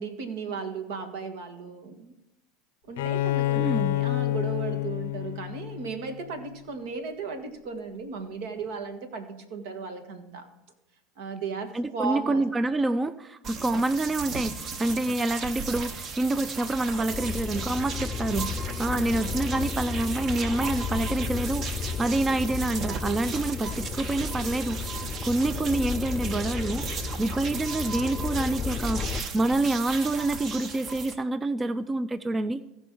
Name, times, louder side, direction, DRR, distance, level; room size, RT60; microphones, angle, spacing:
voice 1, 0.0-2.1 2.9-10.5 11.2-12.4, right 5 dB, 75° right, 7 dB, 1.7 m, -35 dB
Bowed string instrument, 3.0-6.6, left 16 dB, 80° left, 0.5 m, -28 dB
voice 2, 3.5-3.9 11.7-24.8 25.2-32.6, right 2 dB, 20° right, 13 dB, 0.5 m, -27 dB
sound 1, 13.4-31.1, right 5 dB, 45° right, 1.2 m, -36 dB
sound 2, 17.1-29.2, left 6 dB, 35° left, 0.5 m, -34 dB
16.0 x 5.5 x 4.5 m, 0.94 s
hypercardioid pair, 90°, 0 cm